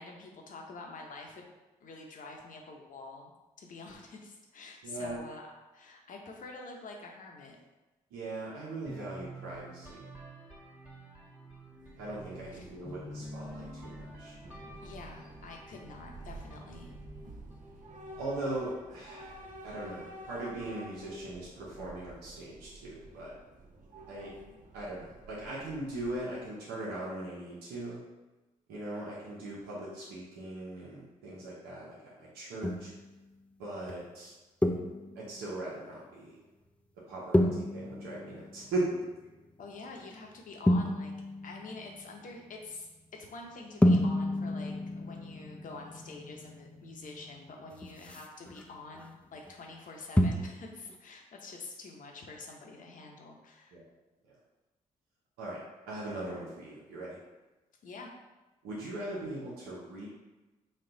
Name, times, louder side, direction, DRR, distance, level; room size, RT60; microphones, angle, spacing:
voice 1, 0.0-1.5 1.8-5.4 5.7-7.6 12.5-12.7 14.8-16.9 39.6-41.1 41.4-53.8 57.8-58.1, left 3 dB, 60° left, 1 dB, 0.9 m, -47 dB
voice 2, 4.8-5.2 8.1-10.1 12.0-14.3 18.2-19.4 19.6-23.3 24.1-24.3 24.7-28.0 28.7-32.9 33.6-34.3 34.6-34.7 35.1-36.4 37.1-39.0 53.7-53.8 54.3-54.4 55.4-55.6 55.9-57.2 58.6-60.1, right 2 dB, 85° right, -6 dB, 0.9 m, -39 dB
sound 1, 8.9-18.7, equal, 10° right, 1.3 m, -49 dB
Train / Subway metro underground, 11.7-26.5, right 1 dB, 55° right, 0.7 m, -50 dB
sound 2, 32.6-33.0 33.9-34.0 34.6-35.3 37.3-39.5 40.7-42.5 43.8-49.1 49.3-49.5 50.2-50.6 50.9-51.0, left 1 dB, 10° left, 0.4 m, -30 dB
4.2 x 2.4 x 3.9 m, 1.1 s
supercardioid pair, 55°, 16 cm